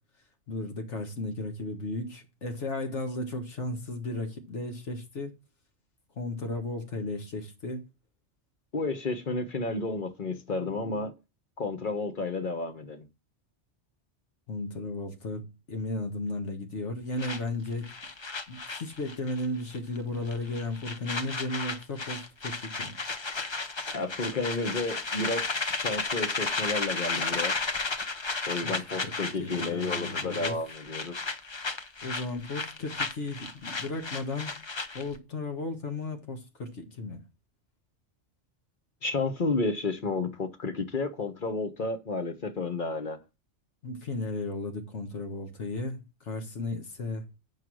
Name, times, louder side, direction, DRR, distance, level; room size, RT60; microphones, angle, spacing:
voice 1, 0.5-5.3 6.2-7.9 14.5-17.9 18.5-23.0 28.6-28.8 29.0-29.1 29.4-30.6 32.0-34.5 34.9-37.2 43.8-47.2, left 2 dB, 80° left, 1.8 m, -35 dB
voice 2, 8.7-11.1 11.6-13.0 23.9-25.4 25.7-27.6 28.5-31.3 39.0-43.2, left 3 dB, 45° left, 1.2 m, -31 dB
sound 1, 17.2-19.5 19.7-20.0 20.3-35.2, left 3 dB, 30° left, 0.6 m, -33 dB
7.7 x 5.0 x 6.2 m
omnidirectional pair, 1.2 m